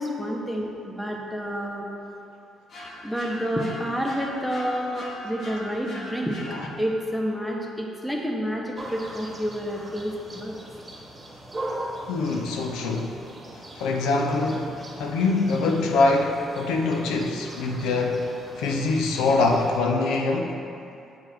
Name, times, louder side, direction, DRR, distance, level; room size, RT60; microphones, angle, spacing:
voice 1, 0.0-1.9 3.0-6.4 6.8-10.6, equal, 5° left, 0 dB, 0.9 m, -29 dB
sound 1, 2.7-7.0, left 1 dB, 55° left, 1.2 m, -40 dB
sound 2, 8.7-19.8, right 1 dB, 20° right, 1.3 m, -40 dB
voice 2, 12.1-13.2 13.8-14.7 15.0-18.2 18.6-20.5, left 3 dB, 85° left, 2 dB, 0.5 m, -24 dB
7.9 x 4.4 x 3.5 m, 2.7 s
supercardioid pair, 75°, 0 cm